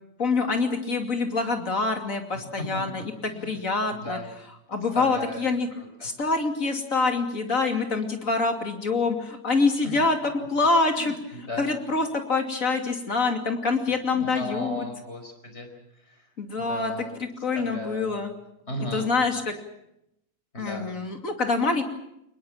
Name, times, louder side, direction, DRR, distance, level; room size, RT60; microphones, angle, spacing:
voice 1, 0.2-4.2 4.7-5.7 6.0-10.2 10.5-11.2 11.6-14.9 16.4-18.3 18.9-19.5 20.6-21.8, left 3 dB, 60° left, 4 dB, 3.2 m, -25 dB
voice 2, 2.3-3.6 3.9-4.3 4.9-5.5 5.8-6.1 9.8-10.0 10.9-11.7 14.1-15.7 16.0-16.3 16.6-17.1 17.6-18.2 18.7-19.1 20.5-20.9, left 1 dB, 45° left, 5 dB, 5.3 m, -36 dB
24.0 x 21.0 x 7.5 m, 0.81 s
omnidirectional pair, 1.6 m